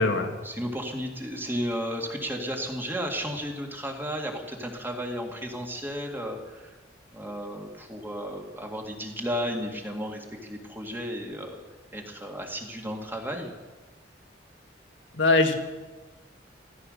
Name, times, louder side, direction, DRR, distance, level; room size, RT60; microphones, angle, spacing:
voice 1, 0.4-6.7 7.1-11.6 11.9-13.5, equal, 10° right, 2 dB, 2.1 m, -33 dB
voice 2, 15.2-15.5, left 3 dB, 75° left, 4 dB, 1.8 m, -21 dB
15.5 x 14.5 x 6.5 m, 1.2 s
head